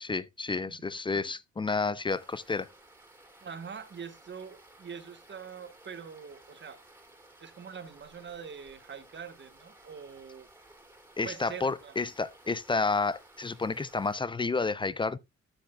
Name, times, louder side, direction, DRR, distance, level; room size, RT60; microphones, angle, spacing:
voice 1, 0.0-2.7 11.2-15.2, left 4 dB, 15° left, 0.3 m, -30 dB
voice 2, 0.6-1.3 3.4-6.8 7.4-10.5 11.2-11.9, right 6 dB, 40° right, 1.1 m, -44 dB
sound 1, 2.1-14.2, right 2 dB, 5° right, 2.4 m, -57 dB
11.5 x 6.9 x 2.2 m
cardioid pair, 90°, 30 cm